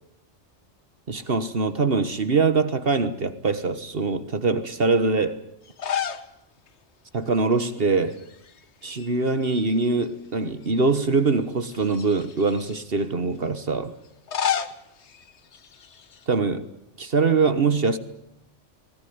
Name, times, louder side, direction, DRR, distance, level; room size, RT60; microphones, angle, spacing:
voice 1, 1.1-5.4 7.1-8.2 8.8-13.9 16.3-16.7 17.0-18.0, right 4 dB, 50° right, 12 dB, 1.5 m, -23 dB
sound 1, 5.7-6.3 6.7-6.8 8.1-8.6 8.9-10.1 10.6-10.7 11.6-12.8 14.0-16.2, left 8 dB, 70° left, 1.4 m, -31 dB
22.5 x 20.0 x 9.4 m, 0.77 s
omnidirectional pair, 1.2 m